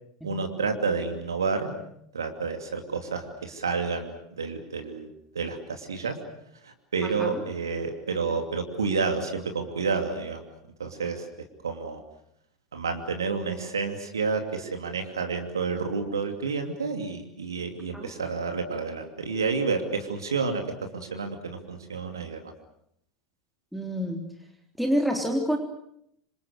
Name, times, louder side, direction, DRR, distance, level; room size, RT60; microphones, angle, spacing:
voice 1, 0.2-1.7 2.1-5.1 5.3-6.2 6.6-10.4 10.8-11.3 11.6-12.0 12.7-20.6 20.9-22.4, right 4 dB, 80° right, 5 dB, 2.7 m, -30 dB
voice 2, 7.0-7.4 17.9-18.1 23.7-24.2 24.8-25.6, equal, ahead, 1 dB, 3.5 m, -27 dB
27.0 x 27.0 x 6.6 m, 0.75 s
figure-of-eight pair, 80°, 2 cm